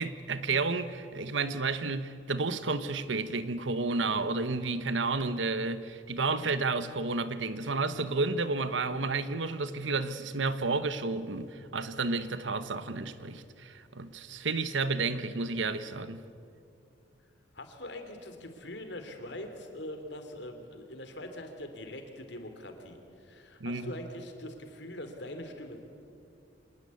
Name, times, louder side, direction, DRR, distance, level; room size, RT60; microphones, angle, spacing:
voice 1, 0.0-16.2 23.6-23.9, right 3 dB, 75° right, 1.2 m, -31 dB
voice 2, 17.5-25.8, left 1 dB, 65° left, 3.1 m, -43 dB
26.0 x 19.5 x 8.5 m
head